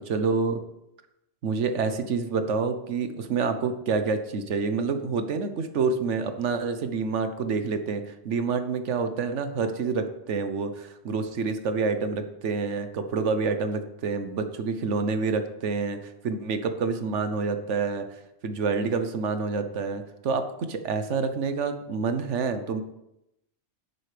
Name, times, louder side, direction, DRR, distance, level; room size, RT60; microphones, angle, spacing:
voice 1, 0.1-0.6 1.4-18.0 18.4-22.8, right 4 dB, 75° right, 8 dB, 1.2 m, -28 dB
11.0 x 8.5 x 3.4 m, 0.85 s
omnidirectional pair, 1.2 m